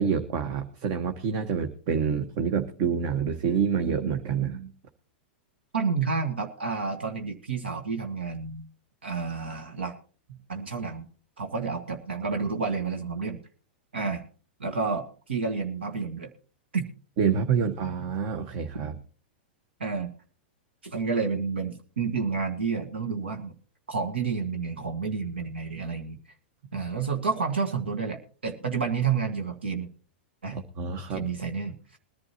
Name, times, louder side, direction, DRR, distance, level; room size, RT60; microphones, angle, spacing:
voice 1, 0.0-4.7 17.2-19.0 30.5-31.3, right 6 dB, 50° right, 7 dB, 1.4 m, -27 dB
voice 2, 5.7-8.7 9.0-9.9 10.5-11.1 11.4-13.4 13.9-14.2 14.6-16.3 16.7-16.8 19.8-20.1 20.8-23.5 23.9-26.2 26.7-29.9 30.4-30.6 31.1-32.0, right 5 dB, 90° right, 5 dB, 1.7 m, -30 dB
21.5 x 11.0 x 2.9 m, 0.40 s
hypercardioid pair, 115°, 6 cm